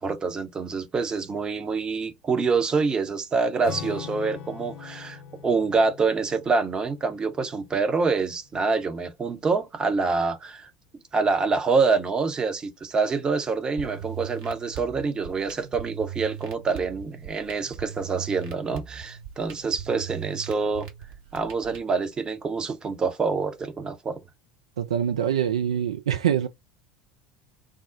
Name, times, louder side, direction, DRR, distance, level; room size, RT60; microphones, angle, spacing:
voice 1, 0.0-10.7 11.1-20.9 21.3-24.2, right 4 dB, 25° right, 0.7 m, -26 dB
Acoustic guitar / Strum, 3.6-8.4, left 8 dB, 45° left, 0.7 m, -42 dB
sound 1, 13.8-21.8, right 10 dB, 55° right, 1.0 m, -39 dB
voice 2, 24.8-26.5, right 9 dB, 70° right, 0.3 m, -24 dB
3.6 x 2.0 x 2.5 m
figure-of-eight pair, 70°, 3 cm